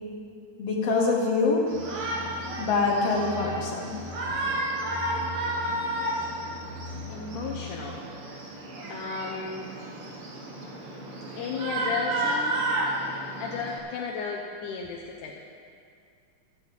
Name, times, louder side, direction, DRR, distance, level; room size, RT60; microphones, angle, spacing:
voice 1, 0.6-1.6 2.6-3.9, left 4 dB, 55° left, -2 dB, 2.6 m, -24 dB
sound 1, 1.7-8.0, left 1 dB, 25° right, 2.6 m, -42 dB
Shout, 1.7-13.8, right 1 dB, 50° right, 2.2 m, -32 dB
voice 2, 7.1-8.0 8.9-9.7 11.4-12.6 13.4-15.4, left 5 dB, 75° left, -1 dB, 2.2 m, -34 dB
13.5 x 6.3 x 8.6 m, 2.3 s
omnidirectional pair, 3.7 m